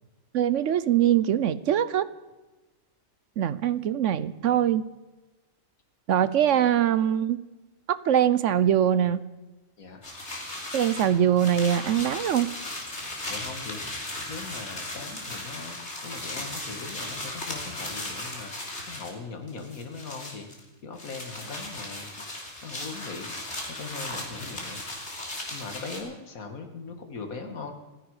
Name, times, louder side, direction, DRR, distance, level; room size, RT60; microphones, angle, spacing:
voice 1, 0.3-2.1 3.4-4.9 6.1-7.4 7.9-9.2 10.7-12.5, right 10 dB, 65° right, 16 dB, 1.0 m, -23 dB
sound 1, 10.0-19.2 19.5-20.6 21.0-26.0, left 1 dB, 50° left, 3.5 m, -37 dB
voice 2, 13.3-20.5 20.8-23.3 23.7-24.8 25.5-27.7, left 4 dB, 80° left, 6 dB, 2.3 m, -40 dB
28.5 x 10.5 x 4.9 m, 1.1 s
omnidirectional pair, 1.4 m